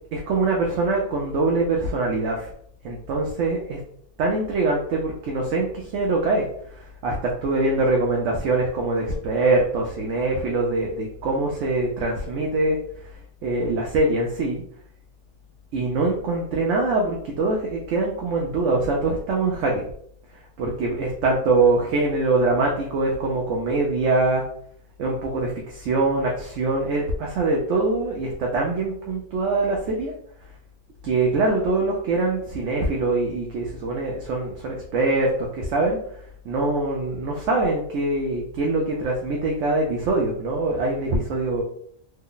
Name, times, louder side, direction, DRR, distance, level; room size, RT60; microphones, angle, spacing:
voice 1, 0.1-2.5 2.8-3.8 4.2-12.8 13.4-14.6 15.7-19.8 20.6-24.4 25.0-30.1 31.0-36.0 36.4-41.6, right 2 dB, 70° right, -1 dB, 0.9 m, -23 dB
3.2 x 2.0 x 3.7 m, 0.66 s
omnidirectional pair, 1.4 m